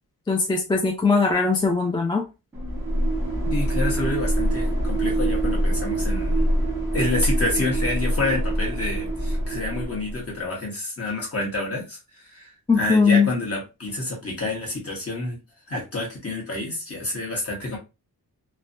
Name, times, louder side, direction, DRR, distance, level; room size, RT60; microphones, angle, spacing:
voice 1, 0.3-2.2 12.7-13.3, left 4 dB, 15° left, 0.3 m, -20 dB
sound 1, 2.5-10.3, right 1 dB, 5° right, 1.1 m, -24 dB
voice 2, 3.5-6.5 6.9-15.4 15.7-17.8, left 2 dB, 40° left, 1.3 m, -28 dB
3.1 x 2.1 x 2.6 m
wide cardioid pair, 165°, 38 cm